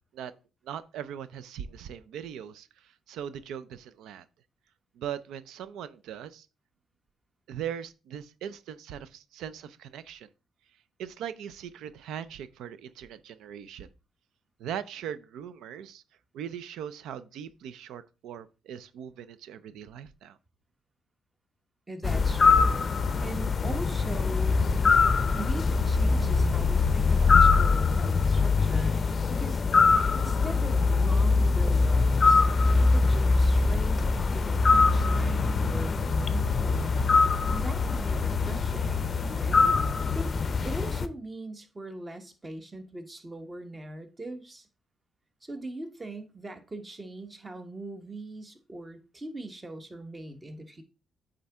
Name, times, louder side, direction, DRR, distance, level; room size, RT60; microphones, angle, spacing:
voice 1, 0.6-4.3 5.0-6.5 7.5-10.3 11.0-13.9 14.6-16.0 16.3-20.4, right 9 dB, 85° right, 0.4 m, -40 dB
voice 2, 21.9-22.8 23.2-24.6 25.3-29.0 29.3-29.6 30.1-32.4 32.7-36.9 37.5-40.3 40.6-44.7 45.4-50.8, right 2 dB, 20° right, 1.1 m, -40 dB
sound 1, 22.0-41.1, left 4 dB, 40° left, 0.5 m, -23 dB
8.4 x 3.8 x 3.5 m
cardioid pair, 90°, 0 cm